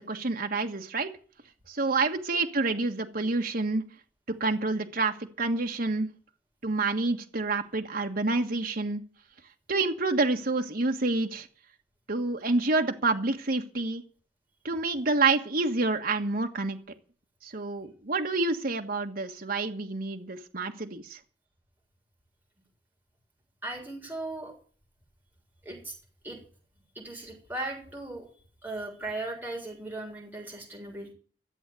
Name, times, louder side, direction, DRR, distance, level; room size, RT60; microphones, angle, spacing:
voice 1, 0.1-1.1 1.7-3.8 4.3-6.1 6.6-9.0 9.7-11.5 12.1-14.0 14.6-16.8 17.4-21.2, right 3 dB, 55° right, 4 dB, 1.5 m, -28 dB
voice 2, 23.6-24.5 25.6-25.9 26.2-26.4 27.0-28.3 28.6-31.1, right 2 dB, 10° right, -1 dB, 7.1 m, -37 dB
14.0 x 8.1 x 9.2 m, 0.43 s
head